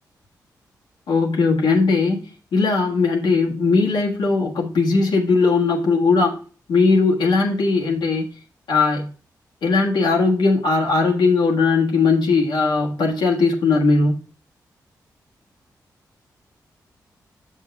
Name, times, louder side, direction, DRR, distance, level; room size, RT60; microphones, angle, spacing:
voice 1, 1.1-2.2 2.5-6.4 6.7-8.2 8.7-9.1 9.6-14.3, left 4 dB, 80° left, 1.5 m, -19 dB
6.5 x 6.5 x 3.5 m
supercardioid pair, 45°, 8 cm